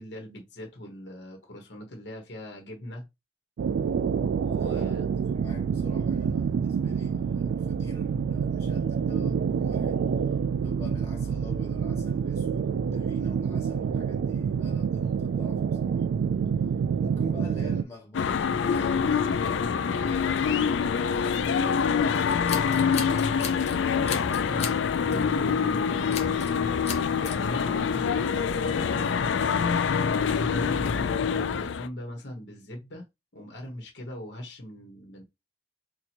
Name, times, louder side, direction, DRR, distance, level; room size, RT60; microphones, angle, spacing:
voice 1, 0.0-3.1 4.4-5.1 24.4-26.6 27.1-33.0 33.3-35.2, left 1 dB, 65° left, 1.1 m, -40 dB
sound 1, 3.6-17.8, right 6 dB, 85° right, 0.3 m, -27 dB
voice 2, 4.5-10.0 10.6-16.1 16.9-19.4 19.9-23.7, left 1 dB, 15° left, 1.6 m, -47 dB
sound 2, 18.1-31.9, left 6 dB, 80° left, 0.4 m, -25 dB
Scissors, 22.2-23.8 24.1-24.8 25.1-25.3 26.1-26.6 26.9-27.4, left 7 dB, 35° left, 0.8 m, -36 dB
4.3 x 2.3 x 2.9 m
head